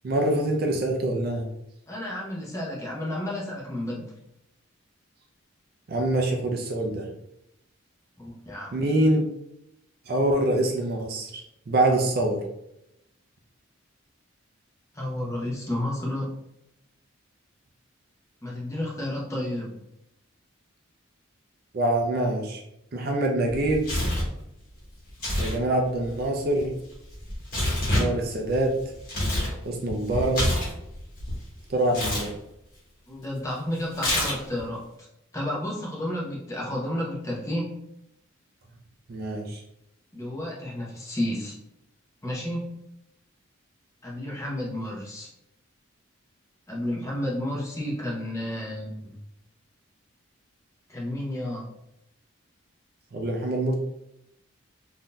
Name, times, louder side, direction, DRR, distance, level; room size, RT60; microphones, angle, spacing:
voice 1, 0.0-1.5 5.9-7.1 8.7-9.2 10.1-12.4 21.7-22.6 22.9-23.9 25.4-26.7 27.9-28.7 29.6-30.5 31.7-32.3 39.1-39.6 53.1-53.7, right 1 dB, 45° right, 2 dB, 0.4 m, -25 dB
voice 2, 1.9-4.1 8.2-8.7 14.9-16.3 18.4-19.8 25.4-25.5 33.1-34.8 35.3-37.7 40.1-41.5 42.2-42.7 44.0-45.3 46.7-49.2 50.9-51.7, left 1 dB, 15° left, -4 dB, 0.7 m, -31 dB
Tearing, 23.5-24.3 25.1-25.6 25.8-29.5 29.9-31.4 31.9-32.3 33.9-34.6, left 1 dB, 40° left, 1.3 m, -27 dB
3.6 x 2.6 x 2.2 m, 0.83 s
head